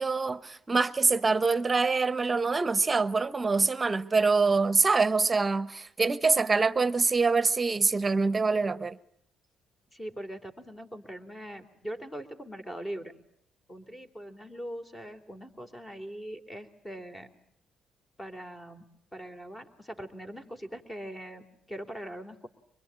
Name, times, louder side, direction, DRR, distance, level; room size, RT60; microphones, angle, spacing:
voice 1, 0.0-9.0, right 4 dB, 25° right, 1.0 m, -25 dB
voice 2, 9.9-13.1 13.7-17.3 18.2-22.5, equal, 15° left, 3.4 m, -41 dB
24.5 x 22.0 x 9.1 m
cardioid pair, 90°, 0 cm